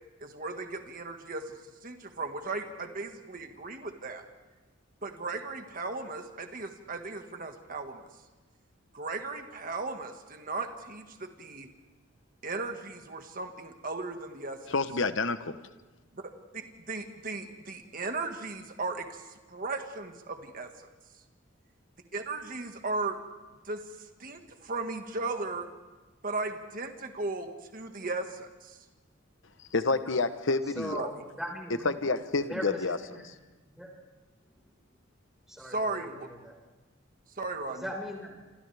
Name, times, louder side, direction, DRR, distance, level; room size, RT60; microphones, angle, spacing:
voice 1, 0.2-1.5 1.8-4.2 5.0-8.0 8.9-11.7 12.4-14.6 16.1-19.2 19.5-20.7 22.1-23.2 23.7-23.8 24.2-25.7 26.2-28.8 31.0-31.1 35.6-36.3 37.4-37.8, right 3 dB, 45° right, 5 dB, 1.8 m, -36 dB
voice 2, 14.7-15.6 29.7-31.0 31.8-33.0, left 3 dB, 65° left, 11 dB, 1.0 m, -28 dB
voice 3, 30.6-31.9 32.5-33.3 33.7-33.9 35.5-36.5 37.7-38.4, equal, ahead, -1 dB, 5.1 m, -39 dB
27.0 x 27.0 x 3.5 m, 1.2 s
head